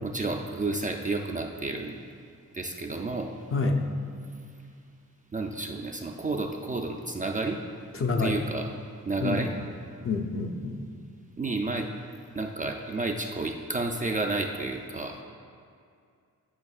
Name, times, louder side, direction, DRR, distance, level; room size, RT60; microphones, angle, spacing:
voice 1, 0.0-2.0 2.5-3.3 5.3-7.6 8.2-8.7 9.1-9.5 11.4-11.9 12.3-15.2, right 3 dB, 25° right, 2 dB, 0.3 m, -31 dB
voice 2, 8.0-8.4 9.2-9.4 10.0-10.8, left 3 dB, 40° left, 4 dB, 0.6 m, -27 dB
11.0 x 5.2 x 2.4 m, 2.3 s
wide cardioid pair, 110°, 33 cm